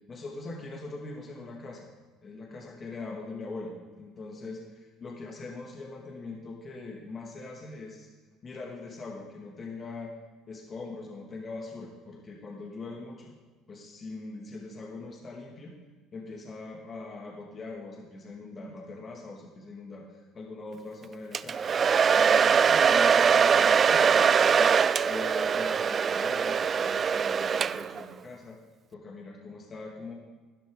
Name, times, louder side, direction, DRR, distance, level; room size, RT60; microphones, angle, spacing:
voice 1, 0.1-1.9 2.2-8.1 8.4-10.1 10.5-13.3 13.7-15.7 16.1-21.6 22.1-28.6 28.9-30.1, left 3 dB, 35° left, -1 dB, 2.3 m, -42 dB
Domestic sounds home sounds, 21.3-28.0, right 6 dB, 40° right, 0.3 m, -22 dB
12.0 x 11.0 x 3.9 m, 1.3 s
supercardioid pair, 80°, 0 cm